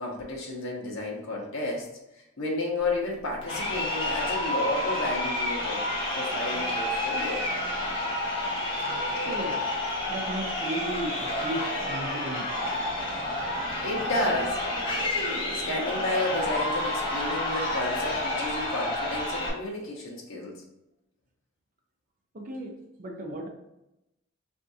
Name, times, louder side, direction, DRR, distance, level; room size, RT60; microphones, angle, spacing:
voice 1, 0.0-1.9 2.1-5.8 6.1-7.4 13.8-14.6 15.5-20.6, left 2 dB, 75° left, -2 dB, 0.8 m, -32 dB
Crowd, 3.4-19.5, left 1 dB, 25° left, 0.9 m, -29 dB
voice 2, 9.2-9.6 10.1-12.5 18.5-18.6 22.3-22.7 23.0-23.5, right 1 dB, 40° right, 1 dB, 0.6 m, -35 dB
3.5 x 2.6 x 2.7 m, 0.89 s
head